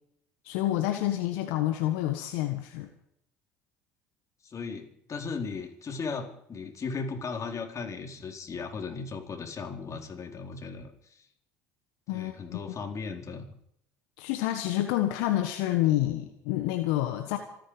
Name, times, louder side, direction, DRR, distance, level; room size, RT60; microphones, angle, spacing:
voice 1, 0.4-2.9 12.1-12.6 14.2-17.4, left 14 dB, 75° left, 7 dB, 1.4 m, -28 dB
voice 2, 4.4-11.3 12.1-13.5, left 5 dB, 40° left, 2 dB, 4.4 m, -37 dB
27.0 x 10.5 x 5.1 m, 0.73 s
hypercardioid pair, 70°, 9 cm